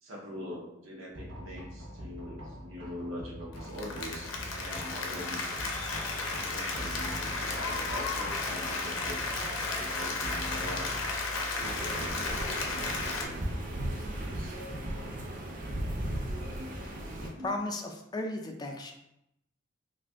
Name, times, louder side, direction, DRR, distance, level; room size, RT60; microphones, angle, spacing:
voice 1, 0.0-9.2 9.7-10.9 11.3-13.5 14.1-14.6 16.6-16.9 17.3-17.5, equal, 90° right, -1 dB, 0.8 m, -43 dB
sound 1, 1.1-15.0, equal, 65° right, 0.9 m, -44 dB
Applause, 3.6-13.3, left 3 dB, 80° left, 0.5 m, -34 dB
sound 2, 11.6-17.3, right 1 dB, 40° right, 0.5 m, -36 dB
voice 2, 17.2-18.9, left 2 dB, 20° left, 3 dB, 0.3 m, -35 dB
2.5 x 2.4 x 3.4 m, 0.82 s
head